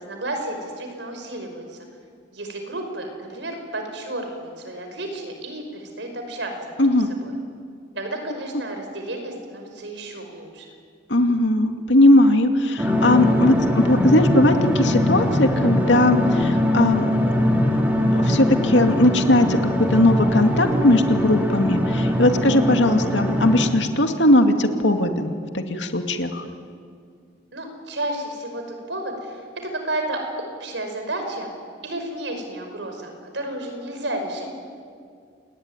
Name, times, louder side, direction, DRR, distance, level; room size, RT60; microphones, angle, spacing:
voice 1, 0.0-1.8 2.3-6.9 7.2-7.3 7.9-10.7 26.4-26.5 27.5-31.5 31.8-34.5, right 1 dB, 80° right, 5 dB, 5.4 m, -32 dB
voice 2, 6.8-7.1 11.1-17.1 18.1-19.6 19.9-26.4, left 1 dB, 80° left, 5 dB, 2.3 m, -19 dB
sound 1, 12.8-23.7, left 1 dB, 10° right, 3.3 m, -21 dB
28.5 x 20.0 x 9.8 m, 2.2 s
head